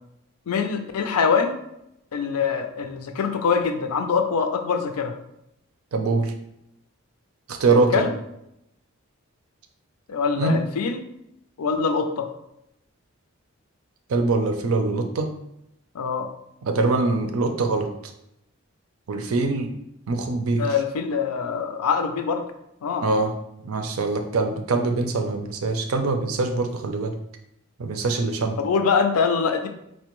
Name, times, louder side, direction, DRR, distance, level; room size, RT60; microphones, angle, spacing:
voice 1, 0.5-1.6 2.1-5.1 7.7-8.1 10.1-11.0 11.6-12.3 15.9-16.3 20.6-22.4 22.8-23.1 28.6-29.7, left 5 dB, 90° left, 6 dB, 0.4 m, -24 dB
voice 2, 5.9-6.3 7.5-8.1 10.4-10.6 14.1-15.3 16.6-17.9 19.1-19.7 20.1-20.7 23.0-23.3 23.6-27.1 27.8-28.6, right 3 dB, 70° right, 5 dB, 0.5 m, -23 dB
4.2 x 2.1 x 3.0 m, 0.81 s
head